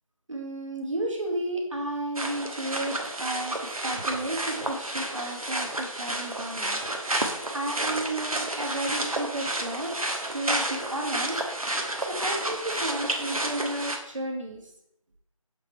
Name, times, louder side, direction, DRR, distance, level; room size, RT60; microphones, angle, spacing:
voice 1, 0.3-6.8 7.1-9.9 10.3-14.7, right 1 dB, 60° right, 0 dB, 1.6 m, -33 dB
sound 1, 2.1-14.0, right 1 dB, 85° right, 1.2 m, -31 dB
7.1 x 3.6 x 4.3 m, 0.75 s
figure-of-eight pair, 170°, 18 cm